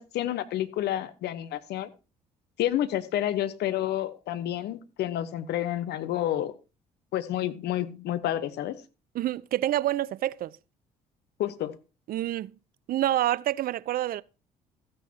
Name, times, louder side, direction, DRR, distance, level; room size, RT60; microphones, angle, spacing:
voice 1, 0.0-1.9 2.6-6.5 7.1-8.8 11.4-11.8, left 12 dB, 65° left, 1.1 m, -29 dB
voice 2, 9.1-10.6 12.1-12.5 12.9-14.2, right 13 dB, 50° right, 0.5 m, -27 dB
14.5 x 9.7 x 2.8 m
hypercardioid pair, 55°, 19 cm